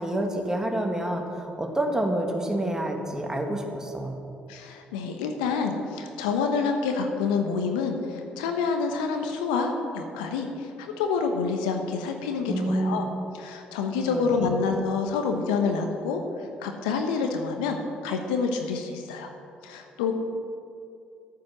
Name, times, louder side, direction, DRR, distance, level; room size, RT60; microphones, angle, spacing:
voice 1, 0.0-4.1 12.5-13.0 14.1-14.6, right 1 dB, 15° right, 2 dB, 2.1 m, -28 dB
voice 2, 4.5-13.1 13.4-17.8 18.0-19.3 19.6-20.1, left 5 dB, 80° left, 4 dB, 1.1 m, -27 dB
13.0 x 9.1 x 6.0 m, 2.6 s
hypercardioid pair, 50°, 4 cm